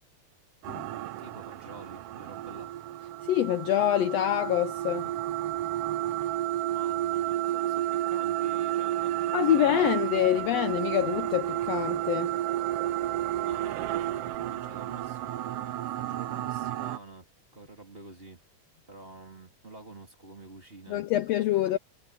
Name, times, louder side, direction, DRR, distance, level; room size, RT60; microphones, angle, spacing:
sound 1, 0.6-17.0, right 12 dB, 85° right, 1.3 m, -31 dB
voice 1, 1.2-2.7 6.7-10.0 10.4-10.5 13.4-17.3 17.5-18.4 18.9-21.0 21.5-21.7, right 2 dB, 20° right, 2.6 m, -48 dB
voice 2, 3.2-5.1 9.3-12.3 20.9-21.8, left 12 dB, 75° left, 1.6 m, -26 dB
omnidirectional pair, 3.4 m